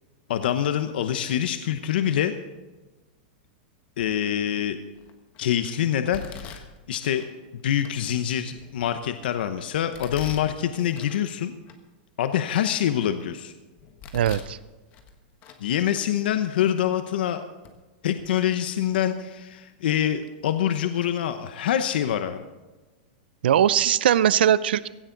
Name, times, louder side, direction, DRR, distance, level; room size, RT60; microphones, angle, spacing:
voice 1, 0.3-2.3 4.0-4.8 5.4-7.3 7.6-11.5 12.2-13.5 15.6-17.4 18.0-22.4, left 10 dB, 70° left, 9 dB, 0.9 m, -25 dB
Domestic sounds home sounds, 4.0-4.4 4.9-5.4 6.1-7.3 7.8-7.9 8.5-9.3 9.9-11.3 11.7-11.8 12.3-13.3 13.8-14.6 14.9-15.6 15.9-16.1 16.9-17.0 17.6-17.7 18.1-18.3, left 6 dB, 30° left, 1.5 m, -43 dB
voice 2, 14.1-14.6 23.4-24.9, right 10 dB, 85° right, 17 dB, 0.5 m, -20 dB
16.5 x 14.5 x 3.9 m, 1.2 s
supercardioid pair, 160°, 5 cm